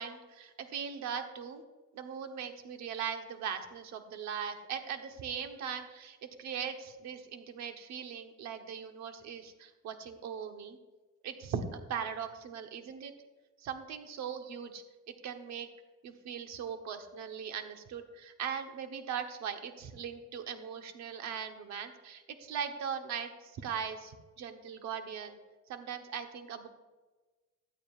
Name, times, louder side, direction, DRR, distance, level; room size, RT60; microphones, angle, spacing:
voice 1, 0.0-1.6 1.9-10.8 11.2-13.1 13.6-14.8 15.2-15.7 16.0-25.4 25.7-26.7, right 7 dB, 65° right, 6 dB, 1.1 m, -39 dB
16.0 x 11.5 x 2.4 m, 1.2 s
cardioid pair, 180°, 30 cm